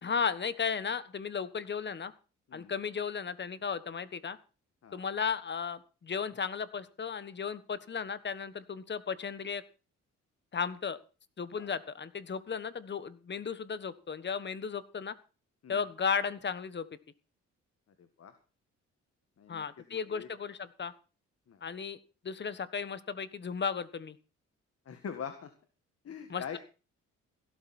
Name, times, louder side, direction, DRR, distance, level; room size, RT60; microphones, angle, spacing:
voice 1, 0.0-2.1 2.5-4.4 4.9-9.6 10.5-11.0 11.4-15.1 15.7-16.8 19.5-20.9 21.6-22.0 22.2-24.2 26.3-26.6, left 6 dB, 35° left, 15 dB, 1.4 m, -35 dB
voice 2, 18.0-18.3 19.4-20.3 21.5-21.6 24.9-25.5 26.0-26.6, left 7 dB, 50° left, 8 dB, 2.0 m, -43 dB
16.0 x 13.0 x 4.4 m, 0.34 s
cardioid pair, 90°, 30 cm